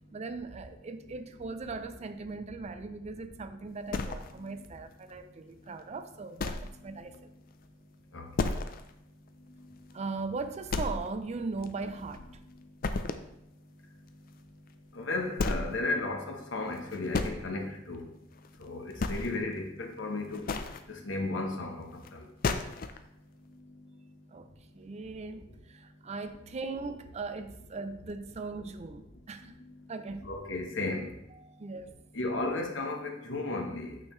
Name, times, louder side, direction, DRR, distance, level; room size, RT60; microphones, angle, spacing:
voice 1, 0.1-7.3 9.9-12.2 24.3-24.5 24.7-29.6 29.9-30.3 31.3-31.9, right 3 dB, 35° right, 0.4 m, -39 dB
sound 1, 3.9-4.7 5.1-5.2 5.7-5.8 6.4-6.8 7.1-7.2 7.6-7.7 8.4-8.9 9.3-9.4 9.9-10.0 10.7-11.3 11.6-12.4 12.8-13.3 14.7-14.8 15.3-15.8 16.7-17.4 18.4-18.6 18.9-19.5 20.2-20.8 22.0-22.1 22.4-23.0, left 3 dB, 50° left, 0.4 m, -32 dB
voice 2, 14.9-18.1 18.6-20.5 20.9-22.3 30.2-31.1 32.1-34.0, left 2 dB, 70° left, 1.0 m, -34 dB
6.6 x 6.2 x 3.1 m
head